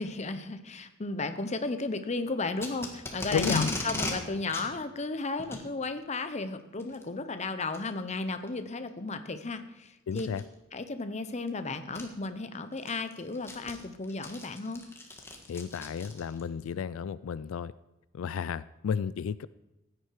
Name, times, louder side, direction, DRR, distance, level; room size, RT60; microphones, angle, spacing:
voice 1, 0.0-10.3 10.7-14.8, left 3 dB, 35° left, 10 dB, 0.8 m, -34 dB
Packing tape duct tape, 2.6-4.2 4.5-4.7 5.4-5.6 6.8-7.0 7.7-7.8 8.5-8.6 10.1-10.4 11.5-11.6 11.9-12.0 12.5-16.4, left 2 dB, 15° left, 1.6 m, -36 dB
voice 2, 3.3-3.7 10.1-10.4 15.5-17.7 18.1-19.5, left 6 dB, 90° left, 17 dB, 0.4 m, -32 dB
15.0 x 9.8 x 4.7 m, 0.98 s
head